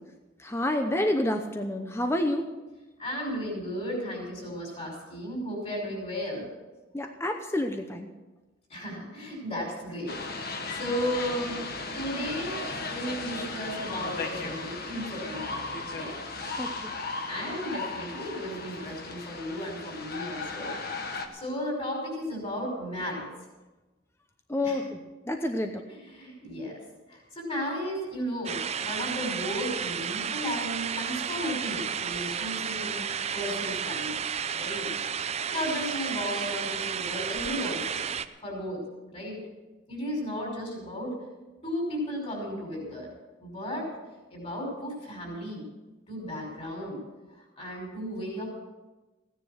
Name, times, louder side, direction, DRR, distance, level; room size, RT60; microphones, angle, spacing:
voice 1, 0.4-2.4 6.9-8.1 16.6-16.9 24.5-24.9 25.3-25.8, left 1 dB, 15° left, 5 dB, 0.7 m, -28 dB
voice 2, 3.0-6.5 8.7-11.6 11.9-16.2 17.3-23.3 24.6-24.8 26.0-26.8 27.1-34.2 34.6-34.9 35.5-38.1 38.4-38.8 39.1-39.4 39.9-41.2 41.6-43.1 43.4-43.9 44.3-45.6 46.1-47.0 47.3-48.5, equal, 35° left, 0 dB, 5.3 m, -34 dB
sound 1, 10.1-21.3, left 3 dB, 50° left, 1.4 m, -36 dB
sound 2, 28.5-38.3, right 7 dB, 35° right, 0.5 m, -32 dB
16.5 x 10.0 x 6.4 m, 1.2 s
head